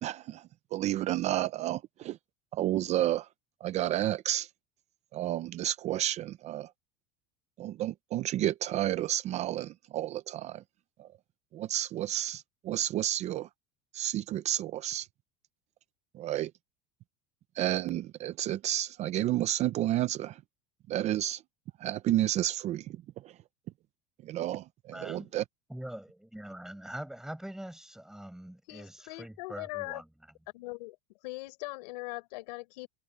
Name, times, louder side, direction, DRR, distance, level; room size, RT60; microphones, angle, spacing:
voice 1, 0.0-2.2 2.5-3.3 3.6-4.5 5.1-6.7 7.6-10.6 11.0-11.1 11.5-13.5 13.9-15.1 16.1-16.5 17.5-20.4 20.9-21.4 21.8-23.4 24.2-25.4, right 13 dB, 35° right, 0.5 m, -31 dB
voice 2, 24.9-25.3 25.7-30.1, right 1 dB, ahead, 6.8 m, -43 dB
voice 3, 28.7-30.0 30.5-31.0 31.2-32.9, left 22 dB, 85° left, 5.3 m, -40 dB
cardioid pair, 155°, 21 cm